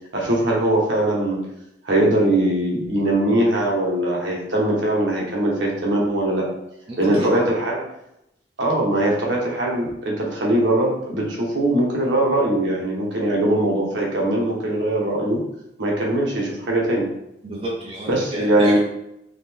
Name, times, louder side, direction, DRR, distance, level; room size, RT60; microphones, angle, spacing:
voice 1, 0.1-1.4 1.8-6.5 7.0-7.8 8.6-15.4 15.8-17.1 18.1-18.8, right 1 dB, 75° right, -3 dB, 1.2 m, -21 dB
voice 2, 6.9-7.5 17.4-18.8, right 1 dB, 30° right, -4 dB, 0.7 m, -29 dB
4.0 x 3.0 x 3.5 m, 0.83 s
head